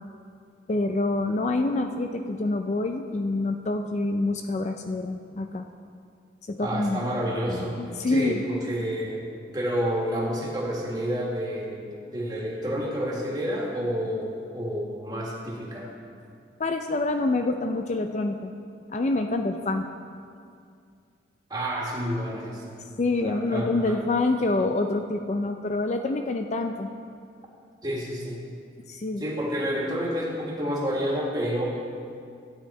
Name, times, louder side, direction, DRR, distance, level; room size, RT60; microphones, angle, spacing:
voice 1, 0.7-5.7 6.5-7.0 7.8-8.5 16.6-18.5 18.9-19.9 23.0-26.9 28.9-29.2, left 2 dB, 35° left, 5 dB, 0.4 m, -26 dB
voice 2, 6.6-7.8 8.1-15.9 21.5-22.6 23.2-24.0 27.8-28.4 29.2-31.7, equal, 20° right, -3 dB, 1.7 m, -29 dB
13.0 x 9.2 x 4.3 m, 2.3 s
head